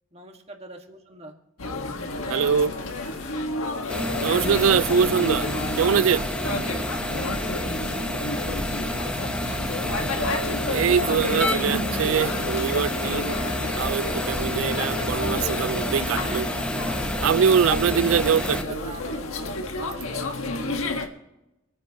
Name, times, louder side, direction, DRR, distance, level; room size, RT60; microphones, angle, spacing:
voice 1, 0.1-1.4 4.3-4.8 5.7-7.9 18.3-20.8, right 1 dB, 30° right, 1.8 m, -43 dB
sound 1, 1.6-21.1, left 2 dB, 90° left, 1.6 m, -31 dB
sound 2, 1.7-3.5 4.2-8.2 8.7-9.7, left 1 dB, 60° left, 4.4 m, -47 dB
voice 2, 2.3-2.7 4.2-5.5 5.8-6.2 10.7-13.4 13.8-16.5 17.2-18.6, right 7 dB, 80° right, 0.4 m, -23 dB
sound 3, 3.9-18.6, equal, 5° left, 1.2 m, -29 dB
27.5 x 10.0 x 3.0 m
head